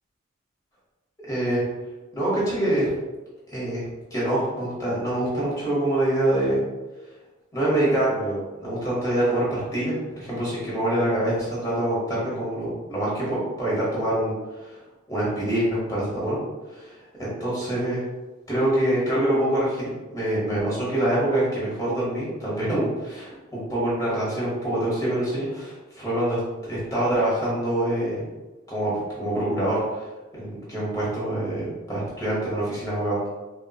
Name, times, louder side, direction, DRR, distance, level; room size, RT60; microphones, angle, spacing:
voice 1, 1.3-1.6 2.1-2.9 3.5-3.8 4.1-6.6 7.5-14.3 14.6-14.8 15.1-16.4 16.7-16.9 17.2-18.0 18.5-28.2 28.7-30.0 30.3-33.3, right 1 dB, 15° left, -8 dB, 0.9 m, -25 dB
3.9 x 2.2 x 2.3 m, 1.2 s
head